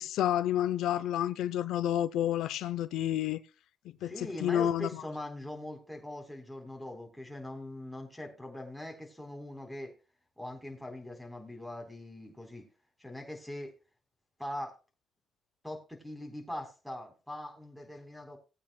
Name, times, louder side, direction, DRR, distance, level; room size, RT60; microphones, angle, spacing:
voice 1, 0.0-3.4 4.0-5.0, left 11 dB, 85° left, 0.5 m, -30 dB
voice 2, 4.0-10.0 10.4-12.7 13.0-13.7 14.4-14.7 15.6-18.4, left 1 dB, ahead, 3.9 m, -42 dB
19.0 x 8.6 x 2.3 m
cardioid pair, 90°, 0 cm